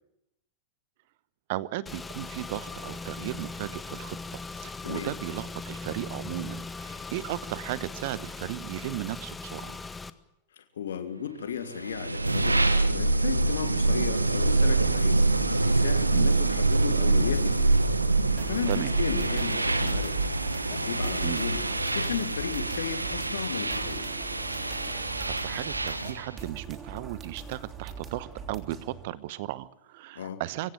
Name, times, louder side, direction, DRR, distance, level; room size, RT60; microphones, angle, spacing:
voice 1, 1.5-9.8 16.1-16.3 18.7-18.9 21.2-21.4 24.8-30.7, right 15 dB, 50° right, 18 dB, 1.0 m, -36 dB
Car / Engine, 1.9-10.1, left 3 dB, 10° left, 1.1 m, -39 dB
voice 2, 10.6-17.8 18.5-20.2 20.5-21.6 21.9-24.1 30.2-30.4, left 8 dB, 65° left, 9 dB, 2.2 m, -35 dB
sound 1, 11.6-26.3, right 2 dB, 80° right, 1.2 m, -25 dB
sound 2, 18.4-29.0, right 6 dB, 20° right, 3.2 m, -42 dB
25.0 x 16.0 x 8.9 m, 0.89 s
figure-of-eight pair, 90°, 0 cm